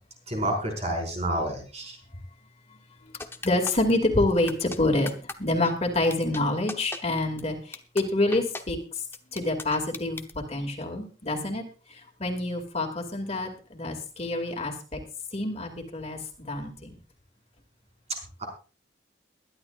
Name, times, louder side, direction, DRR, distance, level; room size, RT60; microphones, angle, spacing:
voice 1, 0.3-2.0 18.4-18.5, right 1 dB, 40° right, 1 dB, 5.2 m, -29 dB
sound 1, 3.2-3.9 4.5-4.8 5.1-5.3 5.6-5.7 6.1-6.4 6.7-7.0 7.4-7.5 7.7-8.0 8.3-8.6 9.1-10.3, left 3 dB, 15° left, 1.0 m, -37 dB
voice 2, 3.4-5.1 5.4-8.8 9.3-10.2 10.5-11.6 12.2-15.0 15.3-16.2 16.5-16.9, left 2 dB, 35° left, 4 dB, 2.5 m, -27 dB
22.5 x 11.5 x 2.5 m, 0.35 s
head